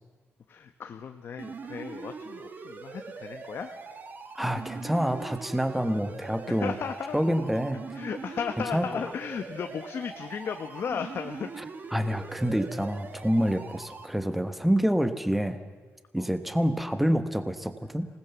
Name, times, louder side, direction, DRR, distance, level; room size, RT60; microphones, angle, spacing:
voice 1, 0.5-3.8 6.5-7.2 7.9-11.5 16.2-16.3, left 7 dB, 55° left, 6 dB, 1.1 m, -35 dB
sound 1, 1.4-14.1, right 4 dB, 40° right, 1.8 m, -42 dB
voice 2, 4.3-6.7 7.1-7.8 8.7-8.9 11.9-15.6 16.1-18.1, equal, 5° right, 9 dB, 1.2 m, -27 dB
26.5 x 19.0 x 7.1 m, 1.4 s
wide cardioid pair, 150°, 5 cm